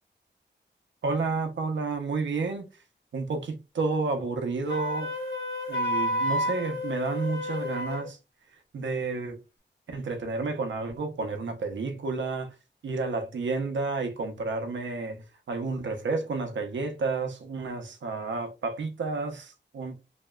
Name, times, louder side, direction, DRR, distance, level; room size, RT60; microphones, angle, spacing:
voice 1, 1.0-2.7 3.1-5.1 5.7-8.2 8.7-9.4 9.9-12.5 12.8-19.9, right 3 dB, 75° right, 0.6 m, -31 dB
Wind instrument woodwind instrument, 4.7-8.1, left 1 dB, 65° left, 1.0 m, -30 dB
2.7 x 2.1 x 2.2 m
wide cardioid pair, 100°, 19 cm